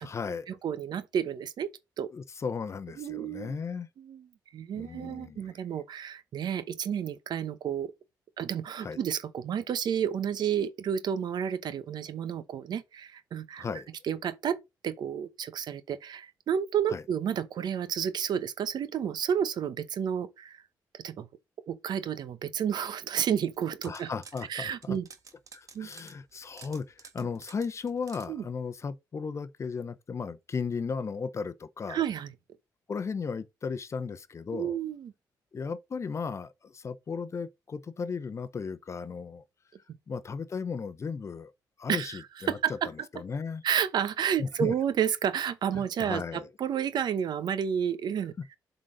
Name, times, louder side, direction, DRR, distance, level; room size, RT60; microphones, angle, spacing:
voice 1, 0.0-0.6 2.1-3.9 4.7-5.5 8.8-9.0 13.6-13.9 16.9-17.0 23.8-25.0 25.5-32.0 32.9-34.8 35.5-39.4 40.1-41.5 41.8-42.6 43.1-43.6 44.4-44.7 45.8-46.5, left 5 dB, 40° left, 0.7 m, -35 dB
voice 2, 0.6-1.7 2.0-2.1 3.0-3.6 4.0-4.3 4.5-7.9 8.4-13.6 14.0-14.6 14.8-20.6 21.0-21.3 21.7-24.1 24.5-25.1 25.7-25.9 28.3-28.4 31.9-32.3 34.5-35.1 41.9-42.9 43.6-48.3, right 8 dB, 70° right, 0.8 m, -31 dB
sound 1, 23.5-24.5 24.8-28.3, right 5 dB, 50° right, 1.4 m, -51 dB
7.5 x 4.0 x 5.0 m
cardioid pair, 105°, 8 cm